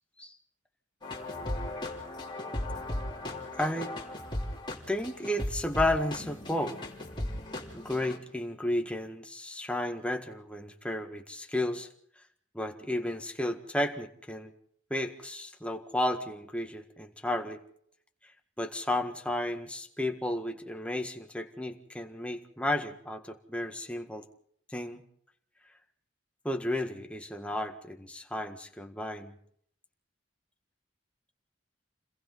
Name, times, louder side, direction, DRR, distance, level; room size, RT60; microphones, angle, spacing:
sound 1, 1.0-8.2, left 1 dB, 25° left, 3.5 m, -37 dB
voice 1, 3.5-3.9 4.9-6.8 7.7-11.9 12.5-14.5 14.9-17.6 18.6-24.3 24.7-25.0 26.4-29.3, left 1 dB, 5° left, 5 dB, 1.7 m, -33 dB
30.0 x 22.0 x 4.1 m, 0.66 s
head